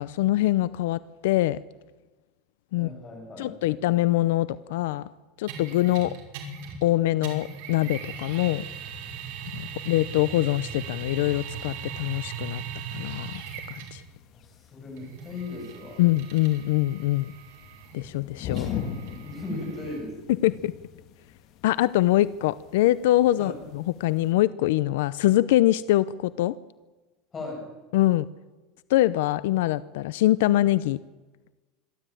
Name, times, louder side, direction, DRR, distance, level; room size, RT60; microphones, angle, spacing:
voice 1, 0.0-1.6 2.7-2.9 3.4-5.1 5.4-6.2 6.8-8.6 9.5-12.6 12.9-13.4 13.7-14.0 16.0-17.3 17.9-18.7 20.4-20.7 21.6-26.5 27.9-28.3 28.9-31.0, left 15 dB, 80° left, 17 dB, 0.6 m, -24 dB
voice 2, 2.7-3.7 14.4-16.0 18.5-18.8 19.2-20.2 23.4-23.6 27.3-27.7, left 2 dB, 20° left, 1 dB, 7.9 m, -37 dB
sound 1, 5.5-6.9 7.2-14.0 15.0-20.0, right 6 dB, 65° right, 5.6 m, -39 dB
sound 2, 8.5-24.3, left 8 dB, 45° left, 1.5 m, -43 dB
26.5 x 12.5 x 9.1 m, 1.2 s
supercardioid pair, 155°, 0 cm